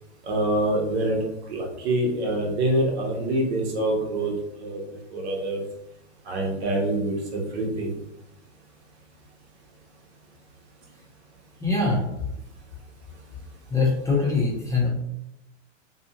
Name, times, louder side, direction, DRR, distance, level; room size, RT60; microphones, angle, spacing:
voice 1, 0.2-1.2 1.5-4.3 4.6-4.8 5.1-5.6 6.3-7.9, right 1 dB, 60° right, -1 dB, 1.0 m, -25 dB
voice 2, 11.6-12.0 13.7-14.9, left 3 dB, 10° left, -5 dB, 0.6 m, -22 dB
2.6 x 2.3 x 2.8 m, 0.84 s
hypercardioid pair, 110°, 36 cm